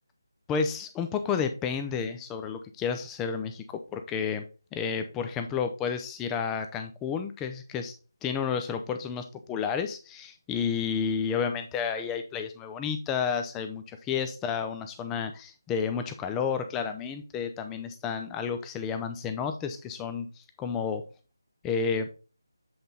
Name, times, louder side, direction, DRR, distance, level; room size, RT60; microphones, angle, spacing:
voice 1, 0.5-4.4 4.7-7.9 8.2-20.3 20.6-21.0 21.6-22.1, left 6 dB, 10° left, 7 dB, 0.5 m, -31 dB
7.7 x 4.0 x 3.8 m, 0.33 s
figure-of-eight pair, 160°, 2 cm